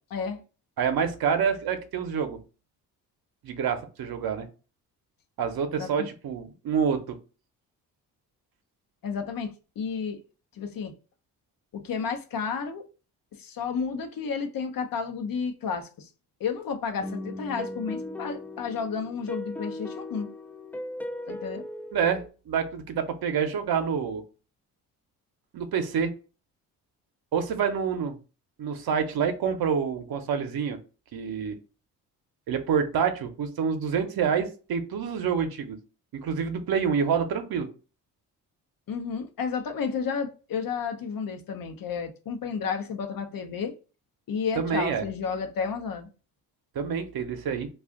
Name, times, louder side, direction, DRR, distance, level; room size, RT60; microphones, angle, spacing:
voice 1, 0.8-2.4 3.4-4.5 5.4-7.2 21.9-24.2 25.5-26.1 27.3-28.2 28.6-30.8 31.1-31.6 32.5-35.8 36.1-37.7 44.6-45.0 46.7-47.7, right 7 dB, 60° right, 0.8 m, -27 dB
voice 2, 9.0-10.2 10.5-10.9 11.7-12.9 13.3-16.1 16.4-20.3 21.3-21.7 38.9-43.7 44.3-46.1, left 6 dB, 55° left, 0.7 m, -32 dB
sound 1, 17.0-22.3, left 1 dB, 5° left, 0.3 m, -38 dB
2.4 x 2.4 x 3.6 m
supercardioid pair, 55°, 40 cm